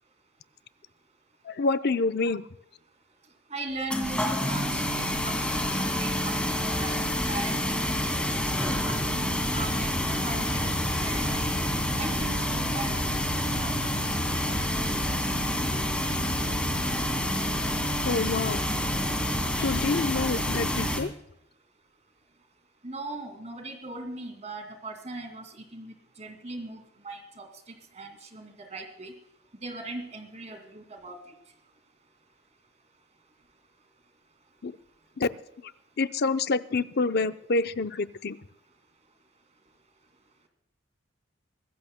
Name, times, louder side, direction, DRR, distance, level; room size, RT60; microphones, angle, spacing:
voice 1, 1.5-2.4 18.0-18.6 19.6-21.1 34.6-34.7 35.2-35.3 36.0-38.4, left 3 dB, 50° left, 11 dB, 0.6 m, -27 dB
voice 2, 3.5-7.0 7.3-7.8 8.1-9.9 10.2-11.5 12.0-14.0 22.8-29.1 29.6-31.2, right 2 dB, 35° right, 6 dB, 2.4 m, -39 dB
sound 1, 3.9-21.0, equal, 5° left, 2.3 m, -28 dB
24.0 x 14.0 x 2.2 m, 0.82 s
head